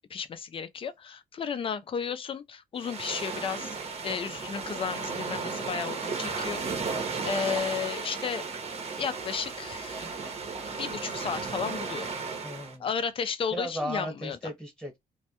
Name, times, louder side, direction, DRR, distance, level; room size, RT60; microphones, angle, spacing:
voice 1, 0.1-3.7 4.0-8.4 9.0-10.2 10.8-12.1 12.8-14.5, left 6 dB, 35° left, 0.4 m, -33 dB
sound 1, 2.8-12.8, right 4 dB, 45° right, 0.7 m, -34 dB
voice 2, 12.4-12.9 13.5-15.0, equal, 5° left, 1.1 m, -35 dB
2.2 x 2.1 x 2.8 m
cardioid pair, 110°, 15 cm